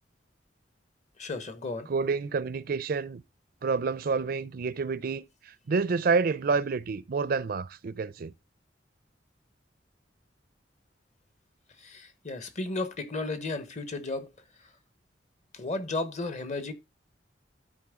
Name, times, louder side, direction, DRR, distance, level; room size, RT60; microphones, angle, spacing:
voice 1, 1.2-1.9 11.8-14.3 15.5-16.7, left 2 dB, 40° left, 1.1 m, -34 dB
voice 2, 1.9-3.2 3.6-8.3, right 4 dB, 55° right, 0.5 m, -28 dB
12.5 x 4.4 x 3.6 m
head